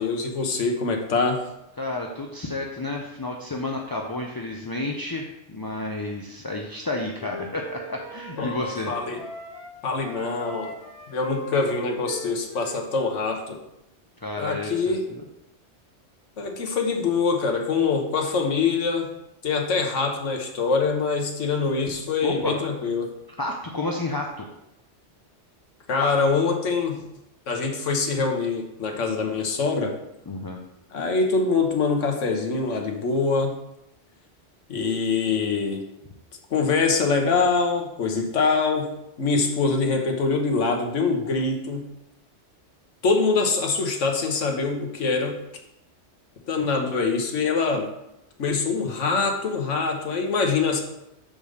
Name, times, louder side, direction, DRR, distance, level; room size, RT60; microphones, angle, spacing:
voice 1, 0.0-1.4 8.4-8.5 8.9-9.2 9.8-10.7 11.1-13.6 14.4-15.0 16.4-19.1 19.4-23.1 25.9-27.0 27.5-30.0 30.9-33.6 34.7-35.8 36.5-38.9 39.2-41.9 43.0-45.4 46.5-47.9 48.4-50.8, left 4 dB, 75° left, 3 dB, 1.4 m, -24 dB
voice 2, 1.8-8.9 14.2-15.2 22.2-22.5 23.4-24.5 30.3-30.6, left 2 dB, 30° left, 0 dB, 0.4 m, -31 dB
Wind instrument woodwind instrument, 6.8-9.7 10.0-13.5, left 1 dB, 60° left, 1.6 m, -40 dB
5.3 x 5.1 x 6.4 m, 0.85 s
omnidirectional pair, 1.3 m